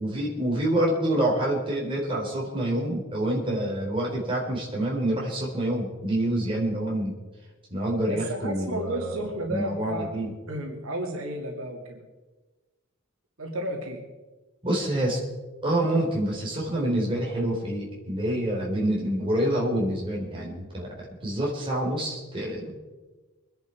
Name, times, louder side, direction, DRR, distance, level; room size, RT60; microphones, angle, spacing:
voice 1, 0.0-7.1 7.7-9.1 9.5-10.3 14.6-15.2 15.6-20.9 21.2-22.8, right 1 dB, 25° right, -3 dB, 4.0 m, -27 dB
voice 2, 8.1-10.2 10.5-12.0 13.4-14.0, right 1 dB, 75° right, 1 dB, 2.4 m, -32 dB
24.0 x 10.5 x 4.7 m, 1.2 s
head